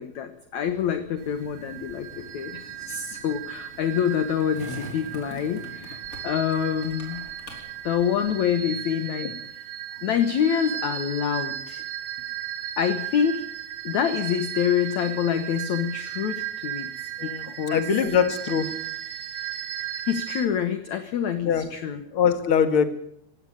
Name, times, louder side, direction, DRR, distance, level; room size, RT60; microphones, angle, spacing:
voice 1, 0.0-6.0 6.2-7.2 7.8-9.3 10.0-11.8 12.8-13.5 13.8-16.9 17.2-17.8 20.1-22.0, left 8 dB, 60° left, 9 dB, 2.0 m, -26 dB
Skateboard, 0.7-8.7, left 1 dB, 20° left, 5.0 m, -44 dB
sound 1, 1.2-20.5, right 11 dB, 65° right, 1.5 m, -36 dB
voice 2, 17.7-18.7 21.4-21.7 22.1-22.9, left 7 dB, 45° left, 9 dB, 2.1 m, -22 dB
17.5 x 17.0 x 9.1 m, 0.73 s
omnidirectional pair, 4.7 m